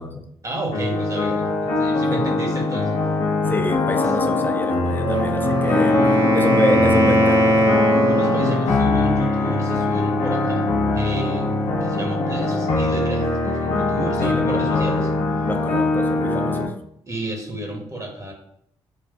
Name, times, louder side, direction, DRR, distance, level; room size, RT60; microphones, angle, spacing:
voice 1, 0.4-3.0 8.1-11.5 11.8-15.1 17.1-18.3, right 1 dB, 25° right, 1 dB, 0.9 m, -31 dB
sound 1, 0.7-16.7, left 2 dB, 60° left, 0.8 m, -22 dB
voice 2, 3.5-7.7 14.2-14.8 15.4-16.7, left 1 dB, 15° left, 5 dB, 0.5 m, -27 dB
Wind instrument woodwind instrument, 4.9-8.7, equal, 75° right, 1.0 m, -19 dB
4.0 x 2.3 x 2.3 m, 0.68 s
hypercardioid pair, 40°, 13 cm